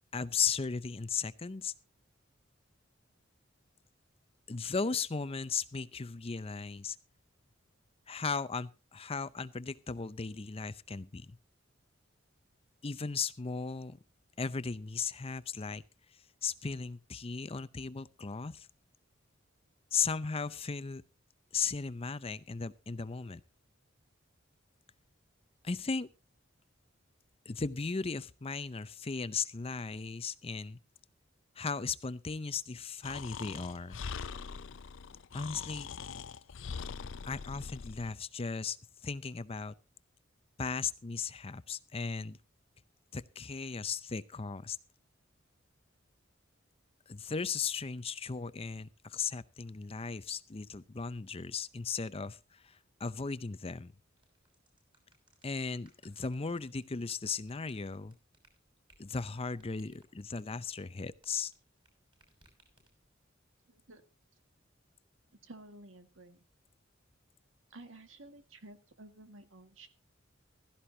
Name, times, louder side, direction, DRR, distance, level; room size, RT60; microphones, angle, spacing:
voice 1, 0.1-1.7 4.5-7.0 8.1-11.4 12.8-14.0 14.4-15.8 16.4-18.7 19.9-21.0 21.5-23.4 25.6-26.1 27.5-30.8 31.6-34.0 35.3-35.9 37.2-38.8 39.0-39.7 40.6-42.4 43.1-44.8 47.1-53.9 55.4-58.1 59.0-61.5, left 5 dB, 30° left, 0.6 m, -36 dB
Breathing, 33.0-38.1, left 6 dB, 75° left, 0.5 m, -42 dB
sound 1, 54.2-61.9 62.1-63.2, right 2 dB, 25° right, 6.2 m, -65 dB
voice 2, 63.7-64.0 65.4-66.4 67.7-69.9, right 2 dB, 85° right, 1.8 m, -52 dB
16.0 x 14.0 x 2.7 m
head